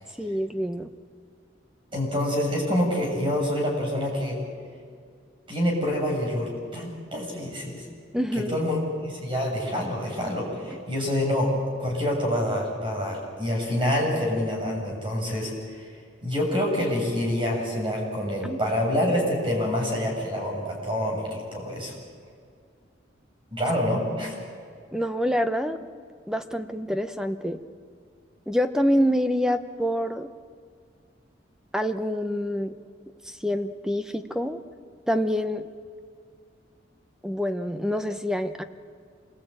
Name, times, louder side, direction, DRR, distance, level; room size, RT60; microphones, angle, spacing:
voice 1, 0.2-0.9 8.1-8.6 18.4-18.6 24.9-25.9 26.3-27.6 28.5-30.3 31.7-32.7 33.4-34.6 35.1-35.6 37.2-38.6, equal, 5° right, 8 dB, 0.9 m, -26 dB
voice 2, 1.9-4.4 5.5-7.8 8.5-15.9 16.2-21.9 23.5-24.4, left 1 dB, 25° right, -1 dB, 6.9 m, -27 dB
26.5 x 20.5 x 8.9 m, 2.2 s
head